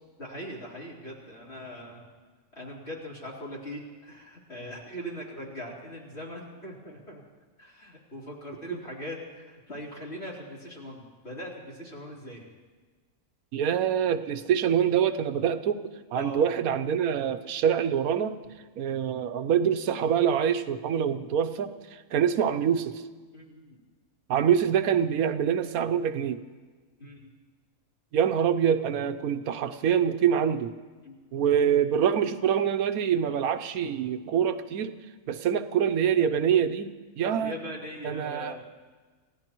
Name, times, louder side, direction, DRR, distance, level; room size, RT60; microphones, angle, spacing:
voice 1, 0.2-2.0 2.5-7.2 7.6-12.5 16.2-16.5 23.3-23.8 27.0-27.3 31.0-31.2 37.3-38.6, equal, 50° left, -5 dB, 3.9 m, -40 dB
voice 2, 13.5-15.8 16.1-18.4 18.8-23.0 24.3-26.4 28.1-30.7 31.3-34.9 35.3-37.6 38.0-38.7, right 8 dB, 85° right, 10 dB, 1.2 m, -25 dB
29.5 x 16.0 x 3.0 m, 1.4 s
omnidirectional pair, 1.5 m